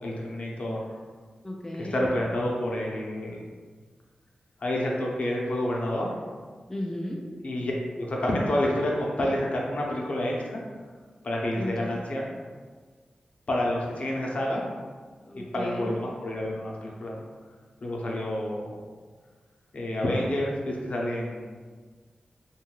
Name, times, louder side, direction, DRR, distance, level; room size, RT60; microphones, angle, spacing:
voice 1, 0.0-0.8 1.8-3.4 4.6-6.1 7.4-10.6 11.2-12.3 13.5-14.6 15.4-17.2 17.8-18.7 19.7-21.5, left 1 dB, 60° left, -2 dB, 0.6 m, -29 dB
voice 2, 1.4-2.1 6.7-7.2 11.6-12.0 15.2-16.0, left 1 dB, 15° left, -1 dB, 0.3 m, -34 dB
2.6 x 2.3 x 3.1 m, 1.5 s
wide cardioid pair, 65°, 3 cm